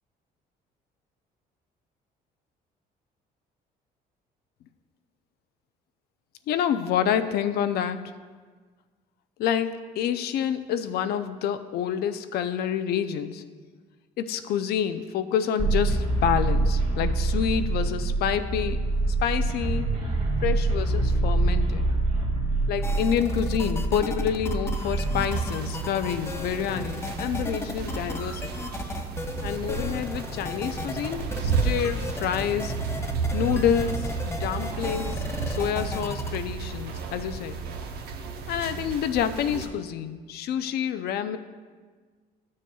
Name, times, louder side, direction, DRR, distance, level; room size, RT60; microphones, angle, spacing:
voice 1, 6.5-8.0 9.4-13.4 14.2-18.8 19.2-19.9 20.4-21.9 22.7-28.7 29.4-32.7 33.3-37.6 38.5-41.4, left 9 dB, 70° left, 10 dB, 0.5 m, -28 dB
sound 1, 15.6-25.4, right 2 dB, 50° right, 1.5 m, -25 dB
sound 2, 22.8-36.4, left 2 dB, 15° left, 0.5 m, -35 dB
sound 3, 25.3-39.7, right 5 dB, 70° right, 0.8 m, -32 dB
12.0 x 6.4 x 2.3 m, 1.5 s
cardioid pair, 110°, 17 cm